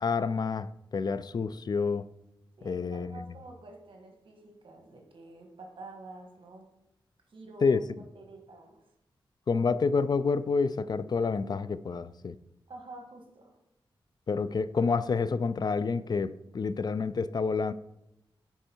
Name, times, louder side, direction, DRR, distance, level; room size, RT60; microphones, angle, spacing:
voice 1, 0.0-2.1 2.6-3.4 7.6-7.8 9.5-12.3 14.3-17.7, left 4 dB, 50° left, 15 dB, 0.4 m, -28 dB
voice 2, 2.6-6.7 7.3-7.8 8.2-8.8 12.7-13.6, right 2 dB, 70° right, 2 dB, 1.7 m, -48 dB
10.0 x 4.5 x 4.5 m, 0.87 s
wide cardioid pair, 100°, 9 cm